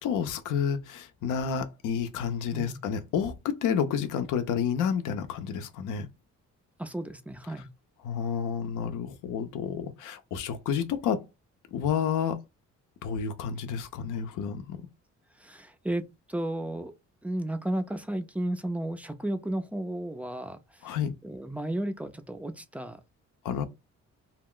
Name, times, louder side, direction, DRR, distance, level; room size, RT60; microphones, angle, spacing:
voice 1, 0.0-6.1 8.0-11.2 11.7-12.4 13.0-14.8 20.8-21.1 23.4-23.6, left 7 dB, 80° left, 0.6 m, -30 dB
voice 2, 6.8-7.7 15.4-16.9 17.2-21.0 21.2-23.0, right 1 dB, 5° right, 0.4 m, -33 dB
2.3 x 2.0 x 3.6 m
cardioid pair, 90°, 30 cm